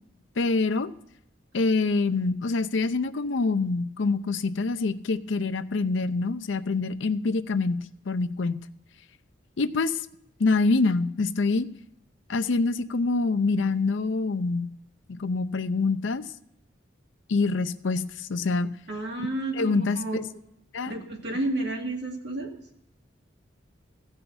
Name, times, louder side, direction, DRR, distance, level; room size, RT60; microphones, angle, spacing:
voice 1, 0.4-0.9 1.5-8.6 9.6-10.0 10.4-11.7 12.3-14.7 15.1-16.2 17.3-18.7 19.6-20.2 20.7-20.9, left 3 dB, 70° left, 12 dB, 0.5 m, -25 dB
voice 2, 18.9-20.2 20.9-22.5, right 2 dB, 60° right, 0 dB, 2.3 m, -31 dB
15.5 x 5.6 x 7.0 m, 0.81 s
head